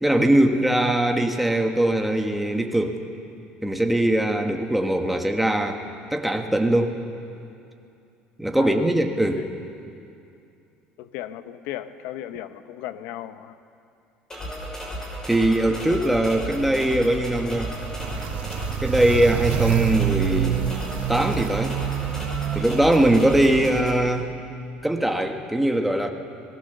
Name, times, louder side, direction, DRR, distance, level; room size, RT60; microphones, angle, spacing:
voice 1, 0.0-3.0 3.6-5.8 6.1-7.0 8.4-9.4 15.3-17.7 18.8-20.7 21.1-21.8 22.5-24.3 24.8-26.1, right 1 dB, 5° right, 3 dB, 1.3 m, -21 dB
voice 2, 8.5-8.9 9.3-9.5 11.0-13.6, left 12 dB, 80° left, 11 dB, 1.0 m, -36 dB
sound 1, 14.3-23.9, equal, 15° left, 5.7 m, -34 dB
Walk footsteps, 16.1-23.8, right 11 dB, 60° right, 1.1 m, -28 dB
25.5 x 19.0 x 6.8 m, 2.6 s
cardioid pair, 155°, 3 cm